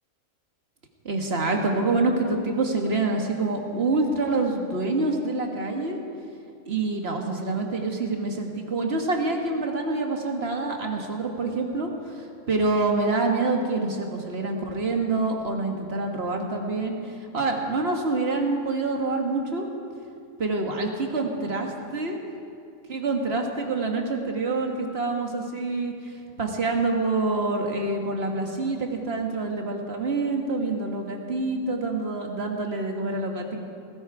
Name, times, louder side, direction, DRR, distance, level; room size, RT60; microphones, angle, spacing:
voice 1, 1.1-6.0 6.7-11.9 12.1-17.0 17.3-19.7 20.4-22.2 22.9-25.9 26.4-33.6, right 3 dB, 50° right, 2 dB, 1.8 m, -26 dB
17.5 x 16.0 x 4.8 m, 2.4 s
omnidirectional pair, 1.4 m